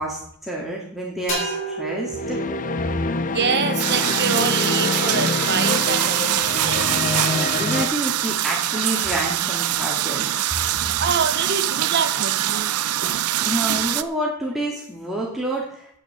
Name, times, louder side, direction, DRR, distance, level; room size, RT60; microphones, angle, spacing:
voice 1, 0.0-2.4 7.2-10.4 13.4-15.9, right 1 dB, ahead, -4 dB, 2.2 m, -28 dB
sound 1, 1.3-4.9, right 3 dB, 60° left, 5.6 m, -33 dB
sound 2, 2.1-7.9, left 4 dB, 35° left, 0.6 m, -26 dB
voice 2, 3.3-6.9 11.0-12.7 13.0-13.1, right 6 dB, 50° right, 9 dB, 1.1 m, -26 dB
sound 3, 3.8-14.0, right 12 dB, 85° right, 0.6 m, -23 dB
8.9 x 8.9 x 7.4 m, 0.70 s
head